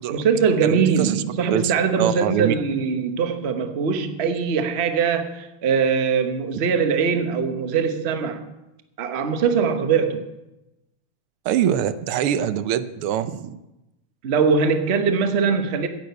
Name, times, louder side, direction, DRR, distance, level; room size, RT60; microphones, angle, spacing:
voice 1, 0.1-8.5 9.0-10.3 14.2-15.9, right 6 dB, 40° right, 8 dB, 0.9 m, -22 dB
voice 2, 0.6-1.2 1.5-2.5 6.5-6.6 11.4-13.6, right 10 dB, 85° right, 13 dB, 1.6 m, -24 dB
10.5 x 8.5 x 9.3 m, 0.96 s
omnidirectional pair, 2.4 m